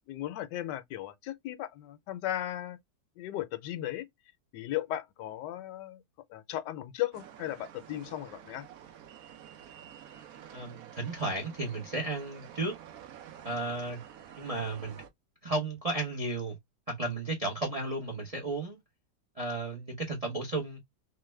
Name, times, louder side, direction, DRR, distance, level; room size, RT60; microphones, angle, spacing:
voice 1, 0.1-2.8 3.2-4.0 4.5-6.0 6.3-8.7, left 13 dB, 75° left, 1.2 m, -36 dB
sound 1, 7.1-15.1, right 9 dB, 70° right, 0.9 m, -50 dB
voice 2, 10.5-12.7 13.4-14.0 14.4-15.0 15.4-16.6 17.0-18.8 19.4-20.8, right 2 dB, 40° right, 0.5 m, -33 dB
3.1 x 2.1 x 3.1 m
omnidirectional pair, 1.9 m